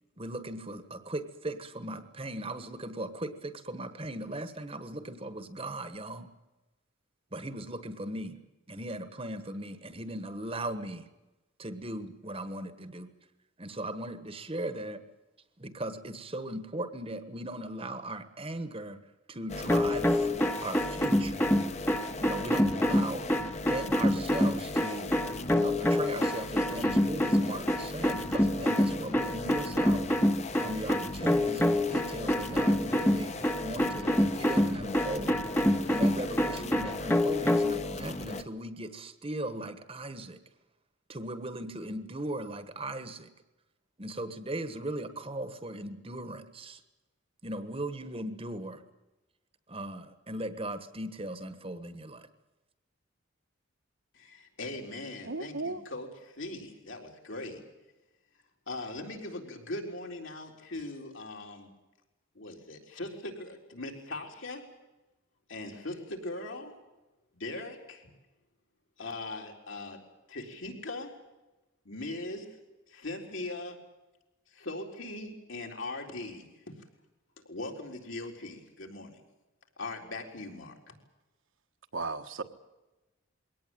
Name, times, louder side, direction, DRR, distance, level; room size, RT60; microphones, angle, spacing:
voice 1, 0.2-6.3 7.3-11.1 11.6-13.1 13.6-15.0 15.6-19.0 19.3-20.3 20.6-21.4 22.2-23.3 23.6-25.2 25.5-30.2 30.6-35.4 35.9-40.4 41.1-43.3 44.0-46.8 47.4-48.8 49.7-52.3, right 1 dB, 25° right, 1.3 m, -38 dB
sound 1, 19.5-38.4, left 2 dB, 30° left, 1.1 m, -38 dB
sound 2, 19.7-37.8, left 1 dB, 10° left, 0.9 m, -26 dB
voice 2, 54.1-57.6 58.7-61.7 62.3-64.6 65.5-66.7 67.3-68.1 69.0-70.0 70.3-71.1 71.8-72.6 72.9-73.8 74.5-76.8 77.5-79.2 79.8-80.7, left 2 dB, 65° left, 4.0 m, -40 dB
voice 3, 55.2-55.8 81.9-82.4, right 3 dB, 65° right, 1.5 m, -35 dB
22.0 x 18.0 x 9.2 m
head